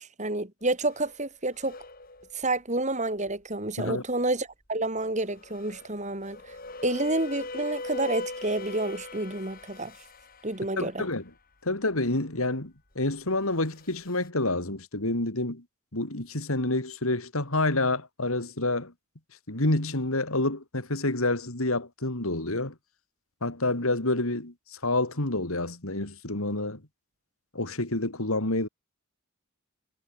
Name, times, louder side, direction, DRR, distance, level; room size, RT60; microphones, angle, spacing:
voice 1, 0.0-1.7 2.3-6.4 6.8-9.9 10.4-11.0, right 2 dB, 35° right, 3.8 m, -29 dB
sound 1, 0.8-1.2 1.5-2.4 3.3-3.4 5.2-11.0 13.0-14.3, left 2 dB, 40° left, 6.5 m, -40 dB
voice 2, 10.8-11.2 11.6-15.6 15.9-18.9 19.5-22.8 23.4-26.8 27.5-28.7, left 2 dB, 75° left, 3.4 m, -28 dB
head